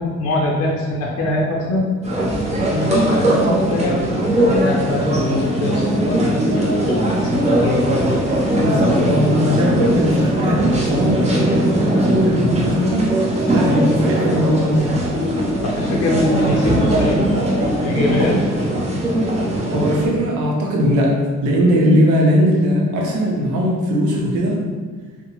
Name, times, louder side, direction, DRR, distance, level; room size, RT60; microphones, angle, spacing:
voice 1, 0.0-1.9 2.7-8.0 15.6-17.3 17.7-18.4, left 1 dB, 55° left, -2 dB, 0.6 m, -23 dB
sound 1, 2.0-20.1, right 1 dB, 20° right, 0.6 m, -19 dB
voice 2, 8.6-13.2 13.5-15.0 19.7-21.2 21.4-24.6, equal, 85° right, -1 dB, 0.7 m, -19 dB
2.8 x 2.2 x 2.9 m, 1.4 s
cardioid pair, 90°, 30 cm